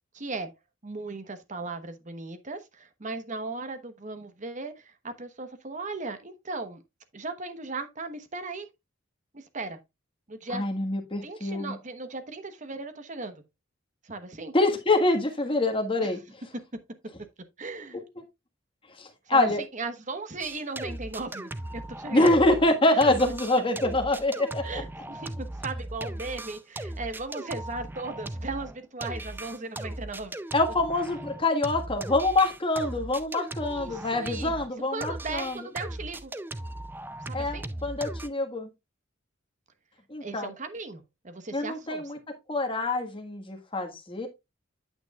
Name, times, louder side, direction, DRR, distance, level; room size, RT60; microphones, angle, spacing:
voice 1, 0.1-0.5 0.8-6.8 7.1-8.7 9.3-9.8 10.3-10.6 11.2-13.4 14.0-14.5 16.0-16.1 16.5-16.6 17.6-18.0 19.3-22.4 24.6-30.4 33.6-34.5 34.9-36.3 37.3-37.7 40.2-42.1, right 3 dB, 40° right, 1.1 m, -37 dB
voice 2, 10.5-11.7 14.5-16.2 19.0-19.6 22.1-24.8 30.5-35.6 37.3-38.7 40.1-40.5 41.5-42.2 42.5-44.3, left 2 dB, 25° left, 1.6 m, -25 dB
sound 1, 20.4-22.7 23.0-34.7 35.0-38.3, right 1 dB, 10° right, 0.4 m, -38 dB
9.0 x 7.9 x 2.4 m
head